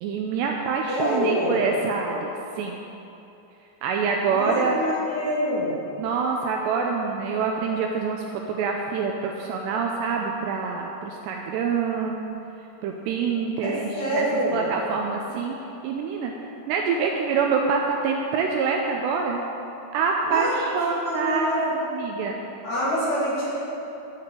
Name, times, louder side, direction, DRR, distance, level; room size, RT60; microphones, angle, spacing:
voice 1, 0.0-2.8 3.8-4.8 6.0-12.2 12.8-15.6 15.8-16.3 16.7-19.4 19.9-21.6 21.9-22.4, right 5 dB, 80° right, 1 dB, 2.6 m, -26 dB
voice 2, 0.9-1.6 4.3-5.7 13.6-14.7 20.2-20.6 21.0-21.7 22.6-23.5, equal, 45° left, -8 dB, 3.0 m, -26 dB
10.5 x 6.7 x 8.5 m, 2.9 s
omnidirectional pair, 5.5 m